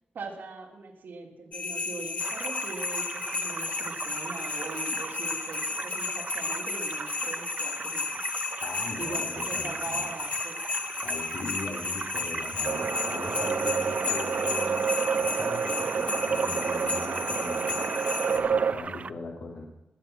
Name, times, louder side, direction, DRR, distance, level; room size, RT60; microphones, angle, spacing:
voice 1, 0.1-8.2 9.0-10.6, right 3 dB, 85° right, 0 dB, 3.1 m, -41 dB
sound 1, 1.5-18.4, left 4 dB, 45° left, 1.7 m, -33 dB
sound 2, 2.2-19.1, right 5 dB, 45° right, 0.5 m, -39 dB
voice 2, 8.6-10.1 11.0-17.7 18.3-19.6, left 3 dB, 75° left, -2 dB, 2.6 m, -40 dB
sound 3, 12.6-18.7, right 6 dB, 65° right, 0.9 m, -28 dB
20.5 x 8.2 x 5.9 m, 0.93 s
wide cardioid pair, 130°, 3 cm